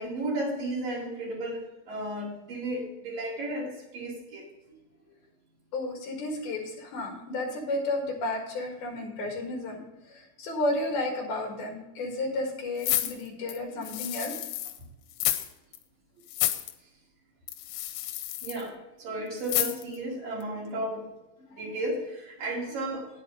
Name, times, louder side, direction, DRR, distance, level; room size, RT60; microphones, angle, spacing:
voice 1, 0.0-4.5 18.4-21.1 21.6-23.1, right 1 dB, 50° right, -3 dB, 3.3 m, -34 dB
voice 2, 5.7-9.8 10.1-14.4 21.4-21.7, left 2 dB, 60° left, 0 dB, 3.1 m, -32 dB
sound 1, 12.8-14.8 15.1-15.5 15.7-15.8 16.3-16.7 17.5-18.6 19.4-20.0 20.4-20.5, left 14 dB, 90° left, 3.3 m, -30 dB
9.5 x 8.4 x 4.9 m, 0.96 s
omnidirectional pair, 6.0 m